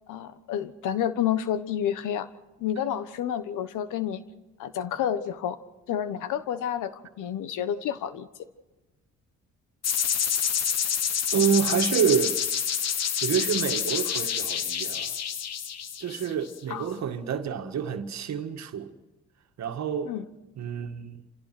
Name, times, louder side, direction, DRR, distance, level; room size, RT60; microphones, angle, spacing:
voice 1, 0.1-2.3 2.6-4.2 4.6-5.6 5.9-8.3 16.7-16.9 20.0-20.2, left 10 dB, 85° left, 1.3 m, -29 dB
sound 1, 9.8-16.6, left 8 dB, 55° left, 1.4 m, -28 dB
voice 2, 11.3-12.4 13.2-15.1 16.0-18.9 19.6-20.1 20.6-21.2, right 7 dB, 65° right, 1.8 m, -27 dB
28.5 x 16.0 x 6.1 m
cardioid pair, 90°, 30 cm